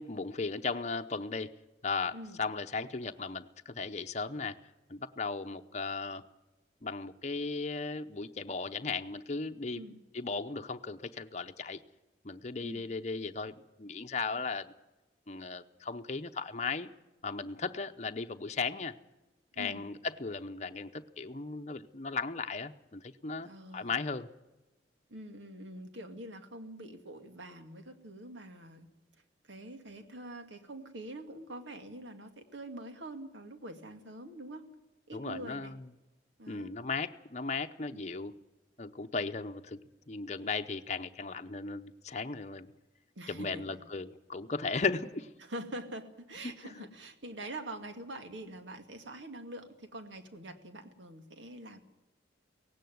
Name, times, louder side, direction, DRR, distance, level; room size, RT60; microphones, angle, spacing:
voice 1, 0.0-1.5 1.8-4.6 4.9-6.2 6.8-9.8 10.1-11.8 12.2-14.7 15.3-16.9 17.2-18.9 19.6-24.3 35.1-35.8 36.5-38.3 38.8-39.8 40.1-42.7 43.3-45.3 46.4-46.9, left 4 dB, 40° left, 7 dB, 0.8 m, -36 dB
voice 2, 23.4-24.0 25.1-28.9 29.5-34.7 35.1-35.7 36.4-36.8 37.9-38.0 43.2-43.8 45.4-51.8, right 1 dB, 85° right, 7 dB, 2.3 m, -45 dB
18.0 x 16.5 x 9.3 m, 1.1 s
head